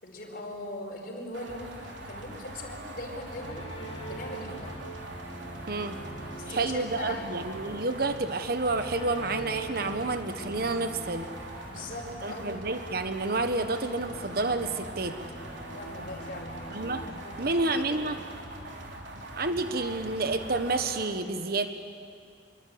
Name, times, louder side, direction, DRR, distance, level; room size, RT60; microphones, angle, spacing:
voice 1, 0.0-3.7 4.1-4.7 6.4-7.3 11.7-12.6 15.7-16.6 17.1-18.1, left 2 dB, 50° left, 1 dB, 4.9 m, -40 dB
sound 1, 1.3-21.1, right 1 dB, 80° right, 3.3 m, -42 dB
sound 2, 3.0-18.2, right 1 dB, 35° left, 2.9 m, -44 dB
voice 2, 6.5-11.3 12.2-15.2 16.7-17.0 17.4-18.2 19.3-21.7, right 3 dB, 55° right, 8 dB, 1.3 m, -29 dB
26.5 x 23.0 x 8.7 m, 2.3 s
head